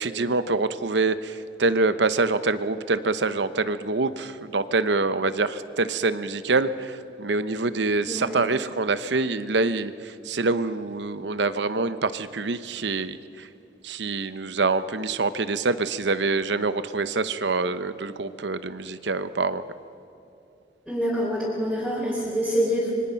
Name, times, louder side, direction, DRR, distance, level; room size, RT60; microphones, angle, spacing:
voice 1, 0.0-13.5 13.8-19.6, right 3 dB, 75° right, 13 dB, 0.8 m, -25 dB
voice 2, 8.1-8.4 20.9-22.9, equal, 5° left, -8 dB, 4.1 m, -26 dB
26.5 x 23.5 x 5.8 m, 2.8 s
head